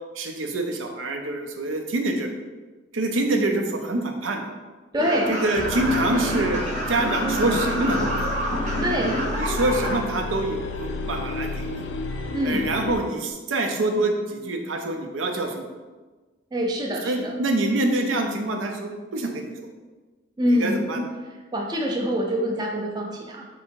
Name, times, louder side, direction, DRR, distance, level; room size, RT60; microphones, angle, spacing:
voice 1, 0.1-2.3 2.9-4.5 5.3-6.6 6.9-8.2 9.3-11.8 12.4-15.7 17.0-19.5 20.5-21.1, right 2 dB, 90° right, 3 dB, 0.5 m, -26 dB
voice 2, 4.9-5.3 8.8-9.3 12.3-12.6 16.5-17.3 20.4-20.9 21.5-23.5, equal, 20° right, 0 dB, 0.4 m, -25 dB
sound 1, 5.0-10.0, right 1 dB, 40° right, 0.8 m, -27 dB
sound 2, 5.6-13.1, left 3 dB, 80° left, 0.4 m, -32 dB
3.4 x 2.7 x 4.5 m, 1.3 s
head